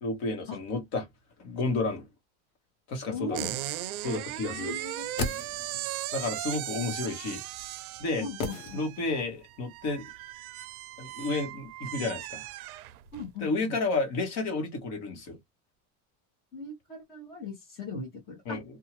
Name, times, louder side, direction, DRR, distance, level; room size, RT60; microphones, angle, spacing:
voice 1, 0.0-1.1 1.4-2.1 2.9-3.4 4.0-4.7 6.1-7.4 8.0-8.2 8.7-10.0 11.0-12.4 13.4-15.4 18.4-18.6, left 3 dB, 40° left, 1.2 m, -31 dB
voice 2, 3.1-3.5 4.5-5.1 6.8-6.9 8.2-8.8 13.1-13.7 16.5-18.6, left 3 dB, 20° left, 1.0 m, -39 dB
sound 1, 3.3-13.3, right 15 dB, 80° right, 0.5 m, -38 dB
sound 2, 4.8-6.0 8.4-9.3 9.6-9.7, left 3 dB, 60° left, 1.0 m, -36 dB
2.6 x 2.3 x 2.9 m
supercardioid pair, 170°, 43 cm